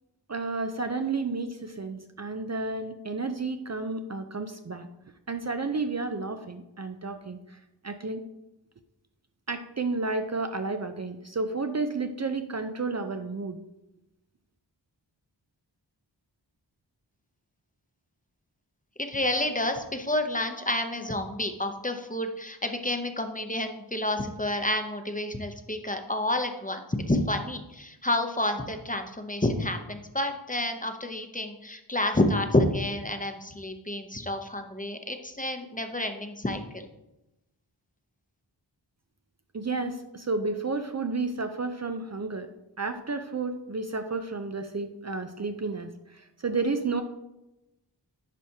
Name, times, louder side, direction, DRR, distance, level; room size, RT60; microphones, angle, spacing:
voice 1, 0.3-4.9 5.3-8.2 9.5-13.6 39.5-42.5 42.8-47.0, right 3 dB, 40° right, 7 dB, 0.5 m, -31 dB
voice 2, 19.0-36.9, left 1 dB, 20° left, 6 dB, 0.7 m, -29 dB
10.0 x 5.0 x 2.8 m, 0.93 s
wide cardioid pair, 55°, 44 cm